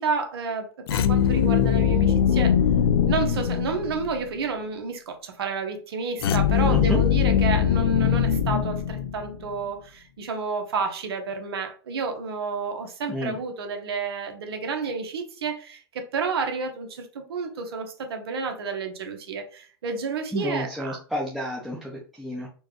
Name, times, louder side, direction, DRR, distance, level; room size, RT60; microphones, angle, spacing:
voice 1, 0.0-2.6 3.0-21.0, right 4 dB, 80° right, 1.0 m, -30 dB
sound 1, 0.9-4.2 6.2-9.5, left 8 dB, 75° left, 0.5 m, -21 dB
voice 2, 6.7-7.0 13.1-13.4 20.3-22.5, equal, ahead, 0.6 m, -30 dB
4.3 x 2.3 x 3.0 m
hypercardioid pair, 135°, 13 cm